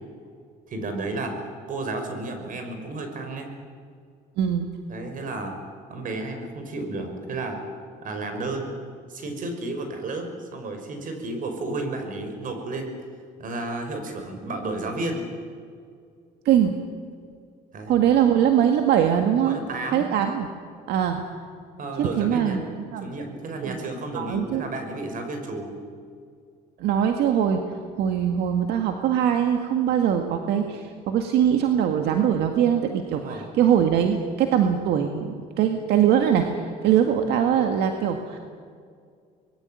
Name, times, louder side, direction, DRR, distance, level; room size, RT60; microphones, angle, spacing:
voice 1, 0.7-1.4 1.7-3.5 4.9-5.5 5.9-7.6 8.0-8.7 9.1-13.0 13.4-15.3 17.7-18.0 19.5-20.1 21.8-25.8 33.1-33.4 37.2-37.3, right 2 dB, 55° right, 6 dB, 6.0 m, -32 dB
voice 2, 4.4-4.7 16.5-16.8 17.9-19.6 19.9-20.5 20.9-21.2 22.0-22.7 22.9-23.1 23.6-23.8 24.1-24.6 26.8-27.6 28.0-38.4, right 9 dB, 80° right, 5 dB, 1.9 m, -22 dB
25.0 x 21.0 x 9.3 m, 2.2 s
cardioid pair, 110°, 17 cm